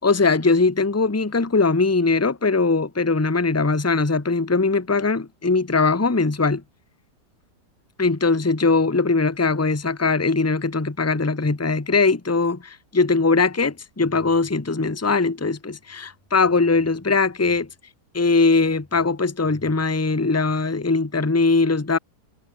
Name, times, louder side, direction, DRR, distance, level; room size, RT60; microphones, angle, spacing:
voice 1, 0.0-6.6 8.0-17.7 18.1-22.0, left 3 dB, 10° left, 1.1 m, -20 dB
omnidirectional pair, 1.7 m